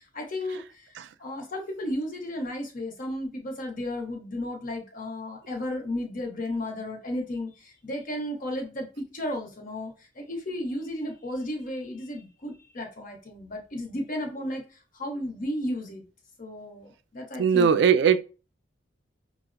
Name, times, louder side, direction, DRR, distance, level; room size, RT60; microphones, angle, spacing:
voice 1, 0.1-0.6 1.2-14.6 15.0-16.0 16.4-17.8, left 1 dB, 50° left, 0.9 m, -33 dB
voice 2, 17.4-18.2, right 7 dB, 70° right, 0.3 m, -19 dB
5.6 x 2.1 x 2.5 m
head